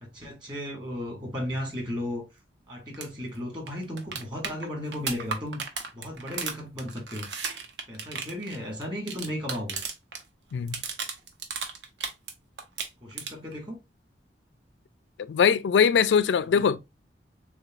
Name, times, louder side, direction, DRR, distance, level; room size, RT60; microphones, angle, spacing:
voice 1, 0.0-2.2 2.7-5.6 5.9-7.3 7.9-9.8 13.0-13.8 16.5-16.8, left 1 dB, 25° right, 1.9 m, -35 dB
sound 1, 2.9-3.1 3.3-3.4 3.7-10.2 10.5-12.3 12.6-13.5 15.6-15.7, right 5 dB, 80° right, 0.9 m, -35 dB
voice 2, 15.2-16.8, left 7 dB, 85° left, 0.3 m, -21 dB
6.8 x 2.3 x 2.4 m
head